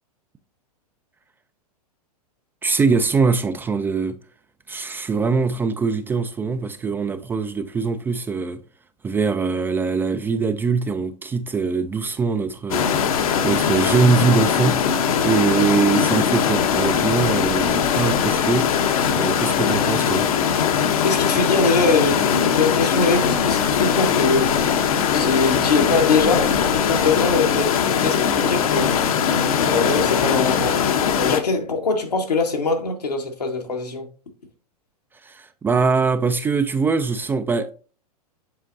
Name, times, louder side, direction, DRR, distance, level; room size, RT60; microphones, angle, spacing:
voice 1, 2.6-4.2 4.7-8.6 9.0-14.8 15.2-18.7 19.1-20.3 35.2-37.7, right 4 dB, 10° right, 0.3 m, -22 dB
sound 1, 12.7-31.4, left 7 dB, 60° left, 0.8 m, -20 dB
voice 2, 21.0-24.6 25.1-26.5 26.8-29.0 29.6-30.8 31.1-34.1, left 4 dB, 85° left, 1.5 m, -22 dB
7.6 x 5.1 x 2.6 m
hypercardioid pair, 105°, 20 cm